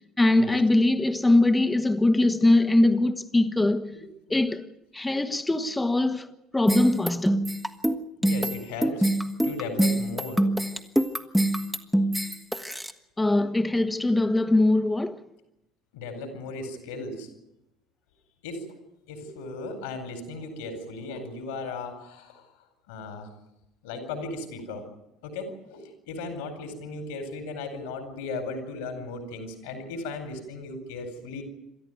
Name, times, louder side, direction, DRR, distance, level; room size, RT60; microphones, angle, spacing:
voice 1, 0.2-4.0 4.3-4.7 4.9-6.3 6.5-7.4 13.2-15.2, left 2 dB, 15° left, 1.6 m, -22 dB
sound 1, 6.7-12.9, right 1 dB, 5° right, 1.7 m, -24 dB
voice 2, 8.2-9.1 9.4-10.5 15.9-17.3 18.4-18.7 19.1-22.5 22.9-23.3 23.8-24.9 25.2-31.4, left 3 dB, 70° left, 4.5 m, -36 dB
28.0 x 13.0 x 9.3 m
figure-of-eight pair, 60°, 0 cm